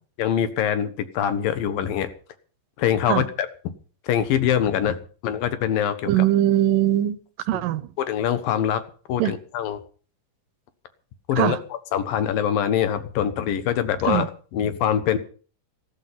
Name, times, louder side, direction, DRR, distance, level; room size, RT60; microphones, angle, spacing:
voice 1, 0.2-2.1 2.8-3.5 4.0-5.0 5.2-6.2 8.0-8.8 9.1-9.8 11.3-11.6 11.9-15.2, left 9 dB, 90° left, 3.1 m, -23 dB
voice 2, 6.1-7.2 7.5-7.9 9.2-9.3 11.4-11.6 14.1-14.3, right 13 dB, 85° right, 2.6 m, -21 dB
14.0 x 13.5 x 5.8 m
omnidirectional pair, 3.9 m